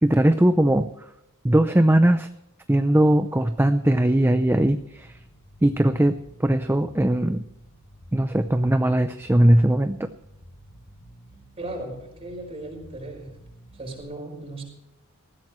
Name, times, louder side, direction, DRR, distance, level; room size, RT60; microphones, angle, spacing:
voice 1, 0.0-0.9 1.4-2.3 2.7-5.1 5.6-7.4 8.1-10.0, right 1 dB, 10° right, 9 dB, 0.6 m, -19 dB
Bass guitar, 4.4-14.0, equal, 30° left, 3.5 m, -50 dB
voice 2, 11.6-13.4 13.7-14.6, right 1 dB, 25° right, 1 dB, 5.5 m, -36 dB
19.5 x 15.0 x 3.2 m, 0.87 s
head